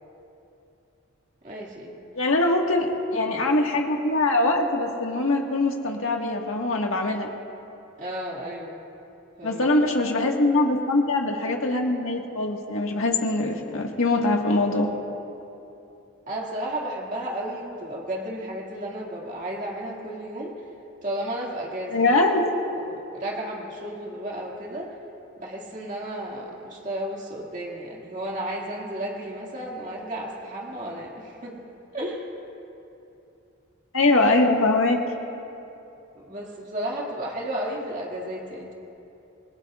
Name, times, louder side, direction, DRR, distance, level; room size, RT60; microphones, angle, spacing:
voice 1, 1.4-2.0 8.0-8.8 9.4-9.7 16.3-20.5 21.0-22.1 22.8-24.9 25.4-31.5 31.9-32.3 36.2-38.7, right 1 dB, 40° right, -3 dB, 2.1 m, -33 dB
voice 2, 2.1-7.3 9.4-14.9 21.9-22.5 33.9-35.0, left 2 dB, 90° left, 1 dB, 1.7 m, -22 dB
27.0 x 20.5 x 2.5 m, 2.8 s
head